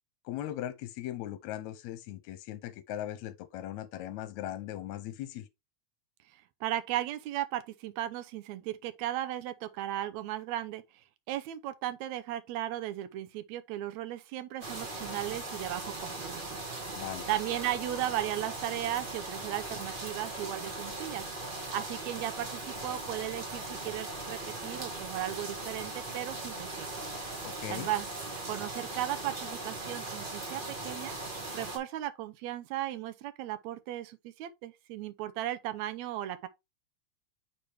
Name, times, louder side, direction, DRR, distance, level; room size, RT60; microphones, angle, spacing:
voice 1, 0.3-5.5 17.0-17.3 27.4-27.9, left 12 dB, 80° left, 2.0 m, -39 dB
voice 2, 6.3-10.8 11.3-16.6 17.3-21.3 21.7-26.9 27.7-28.1 28.5-31.2 31.5-36.5, right 13 dB, 75° right, 2.0 m, -36 dB
sound 1, 14.6-31.8, right 2 dB, 45° right, 0.6 m, -39 dB
6.7 x 4.7 x 3.3 m
omnidirectional pair, 3.3 m